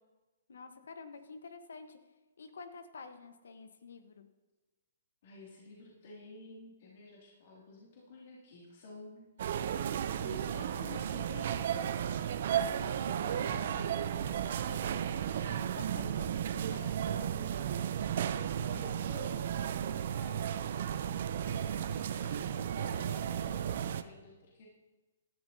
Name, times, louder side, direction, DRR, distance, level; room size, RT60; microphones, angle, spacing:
voice 1, 0.5-2.0 2.4-4.3 12.7-16.3 16.7-17.5, left 4 dB, 80° left, 8 dB, 1.2 m, -49 dB
voice 2, 5.2-9.7 10.2-12.7 16.0-16.2 18.6-19.5 19.7-24.7, left 3 dB, 55° left, -5 dB, 2.7 m, -51 dB
sound 1, 9.4-24.0, right 9 dB, 55° right, 0.6 m, -34 dB
16.0 x 12.0 x 2.8 m, 1.2 s
hypercardioid pair, 145°, 0 cm